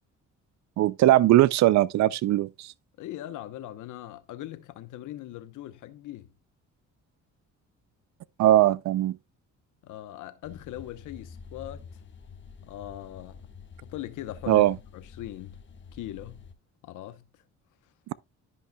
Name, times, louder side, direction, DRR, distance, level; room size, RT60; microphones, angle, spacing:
voice 1, 0.8-2.7 8.4-9.2 14.5-14.7, right 14 dB, 65° right, 0.5 m, -20 dB
voice 2, 3.0-6.3 9.8-11.9 12.6-13.4 13.8-15.6 15.9-16.5 16.8-17.2, left 13 dB, 85° left, 0.9 m, -40 dB
sound 1, 10.4-16.5, left 5 dB, 40° left, 1.3 m, -48 dB
12.5 x 5.4 x 2.2 m
cardioid pair, 90°, 30 cm